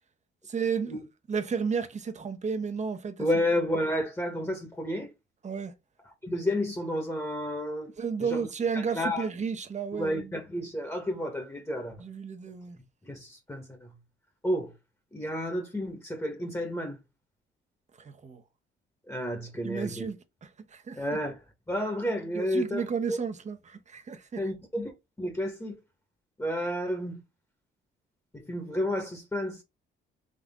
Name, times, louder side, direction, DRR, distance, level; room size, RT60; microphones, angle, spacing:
voice 1, 0.5-1.0 1.3-3.3 5.4-5.7 8.0-10.4 12.0-12.8 18.0-18.4 19.6-21.2 22.3-24.5, right 6 dB, 35° right, 0.9 m, -33 dB
voice 2, 3.2-5.1 6.2-7.9 8.2-8.5 8.7-9.3 10.0-12.0 13.0-13.9 14.4-14.7 15.1-17.0 19.1-20.1 21.0-21.4 21.7-23.2 24.4-24.9 25.2-25.7 26.4-27.2 28.3-29.6, equal, 15° left, 1.3 m, -31 dB
3.8 x 3.4 x 3.6 m
cardioid pair, 90°, 20 cm